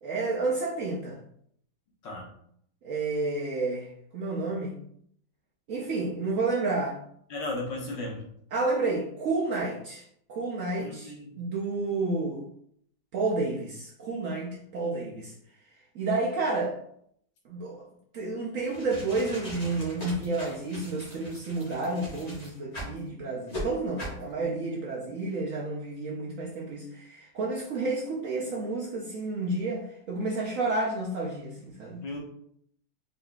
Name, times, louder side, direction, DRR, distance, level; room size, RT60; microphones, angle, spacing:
voice 1, 0.0-1.2 2.8-4.8 5.7-7.0 8.5-12.5 13.1-15.3 15.9-16.8 17.4-17.9 18.1-32.0, right 3 dB, 65° right, -3 dB, 0.8 m, -30 dB
voice 2, 7.3-8.3 10.8-11.4 32.0-32.2, left 2 dB, 80° left, -2 dB, 1.8 m, -35 dB
sound 1, 18.6-23.0 23.5-23.6 24.0-24.2, equal, 25° left, 1.1 m, -40 dB
4.0 x 3.9 x 2.3 m, 0.69 s
omnidirectional pair, 1.9 m